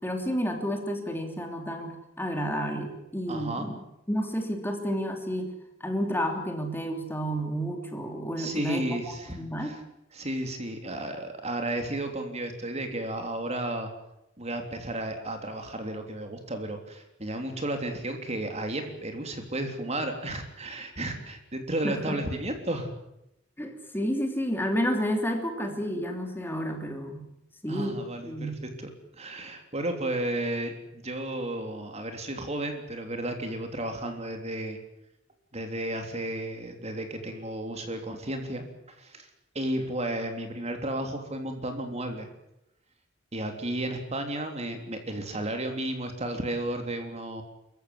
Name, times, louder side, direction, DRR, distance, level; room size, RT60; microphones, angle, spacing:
voice 1, 0.0-3.8 4.1-5.5 5.8-9.7 21.8-22.2 23.6-27.2 27.6-28.5, equal, 10° left, 4 dB, 3.2 m, -31 dB
voice 2, 3.3-3.7 8.4-9.8 10.1-13.9 14.4-22.9 27.7-28.5 28.8-34.8 35.5-38.6 39.0-39.3 39.5-42.3 43.3-47.4, right 1 dB, 35° right, 5 dB, 3.3 m, -33 dB
27.0 x 15.0 x 9.8 m, 0.84 s
head